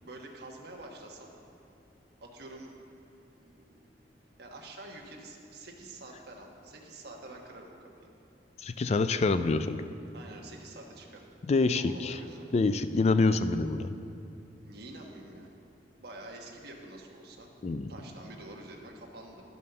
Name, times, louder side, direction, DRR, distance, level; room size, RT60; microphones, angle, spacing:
voice 1, 0.0-1.3 2.2-2.7 3.2-3.8 4.4-8.1 10.1-11.3 11.7-12.5 14.6-15.5 16.0-17.5 17.9-19.4, right 2 dB, 65° right, 0 dB, 1.3 m, -47 dB
voice 2, 8.6-9.8 11.5-12.2 12.5-13.9 17.6-17.9, left 3 dB, 40° left, 11 dB, 0.3 m, -26 dB
11.0 x 5.4 x 6.6 m, 2.7 s
head